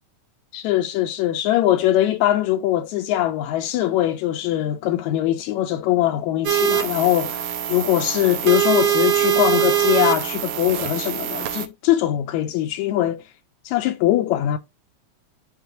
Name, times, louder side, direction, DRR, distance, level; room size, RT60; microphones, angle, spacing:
voice 1, 0.5-13.2 13.7-14.6, left 13 dB, 80° left, 1.8 m, -21 dB
sound 1, 6.5-11.7, right 10 dB, 70° right, 1.8 m, -23 dB
9.4 x 3.7 x 2.8 m
omnidirectional pair, 3.5 m